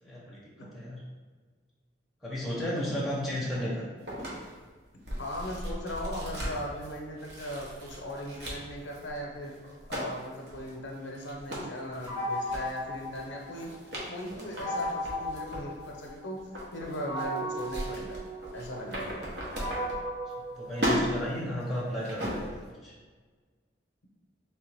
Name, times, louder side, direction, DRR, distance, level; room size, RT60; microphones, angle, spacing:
voice 1, 0.0-1.0 2.2-3.8 20.4-22.5 22.8-22.9, equal, ahead, -7 dB, 0.8 m, -34 dB
sound 1, 4.1-20.5 20.7-22.7, equal, 60° right, 0.9 m, -37 dB
voice 2, 5.2-9.6 9.9-13.8 14.1-18.2 18.5-19.3, equal, 75° left, -1 dB, 0.7 m, -38 dB
sound 2, 12.1-13.9 14.6-16.4 17.1-21.3, equal, 20° right, 0.9 m, -36 dB
3.3 x 3.3 x 3.3 m, 1.4 s
head